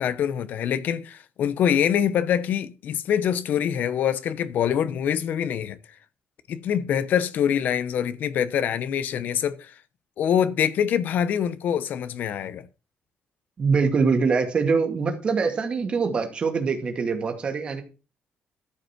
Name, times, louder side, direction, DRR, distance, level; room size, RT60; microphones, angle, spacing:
voice 1, 0.0-5.8 6.5-9.7 10.2-12.6, left 9 dB, 55° left, 0.9 m, -24 dB
voice 2, 13.6-17.8, right 5 dB, 30° right, 2.2 m, -23 dB
13.5 x 5.5 x 5.9 m
cardioid pair, 180°, 3 cm